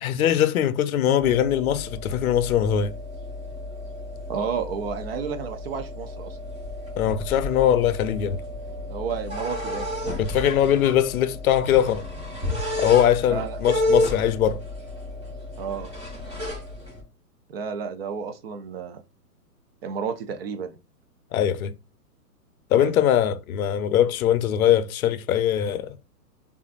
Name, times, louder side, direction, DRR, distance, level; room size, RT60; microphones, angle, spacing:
voice 1, 0.0-2.9 7.0-8.4 10.2-12.0 12.8-14.6 21.3-21.7 22.7-26.0, left 10 dB, 60° left, 0.6 m, -21 dB
sound 1, 1.2-17.0, left 1 dB, 10° right, 1.7 m, -32 dB
voice 2, 4.3-6.4 8.9-9.9 13.3-13.6 15.6-15.9 17.5-19.0 19.8-20.8 22.7-22.9, right 6 dB, 40° right, 0.5 m, -31 dB
4.9 x 2.5 x 2.4 m
hypercardioid pair, 130°, 48 cm